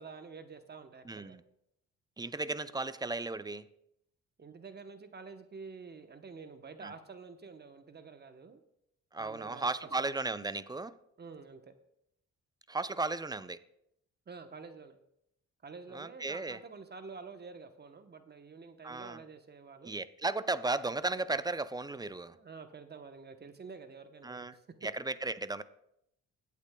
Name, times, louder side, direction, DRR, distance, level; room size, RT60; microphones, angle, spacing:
voice 1, 0.0-1.4 4.4-8.6 9.2-9.7 10.0-10.2 11.2-11.7 14.3-15.0 15.6-19.9 22.1-24.6, right 4 dB, 35° right, 8 dB, 0.9 m, -49 dB
voice 2, 1.1-1.4 2.2-3.7 6.8-6.9 9.1-10.9 12.7-13.6 15.9-16.6 18.8-19.2 19.8-22.4 24.2-24.6 24.8-25.6, right 3 dB, 15° right, 14 dB, 0.4 m, -35 dB
22.0 x 8.4 x 2.2 m, 0.77 s
cardioid pair, 90°, 30 cm